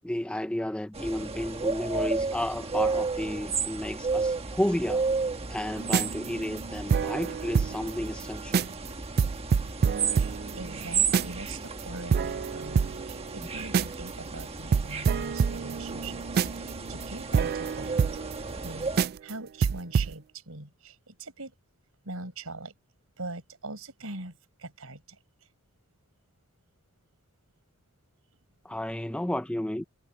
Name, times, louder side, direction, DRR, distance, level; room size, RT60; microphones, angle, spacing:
voice 1, 0.0-5.1 5.5-8.7 28.6-29.8, left 1 dB, 5° left, 0.5 m, -32 dB
sound 1, 0.9-19.1, right 4 dB, 30° right, 1.3 m, -33 dB
sound 2, 5.8-7.9 8.2-8.3 8.5-8.9 9.2-11.5 11.8-11.9 12.1-14.1 14.4-14.5 14.7-18.7 19.0-19.3 19.6-20.1, right 6 dB, 45° right, 0.3 m, -27 dB
voice 2, 10.2-18.2 18.6-18.9 19.2-21.5 22.0-22.7 23.2-25.2, right 2 dB, 75° right, 4.9 m, -42 dB
head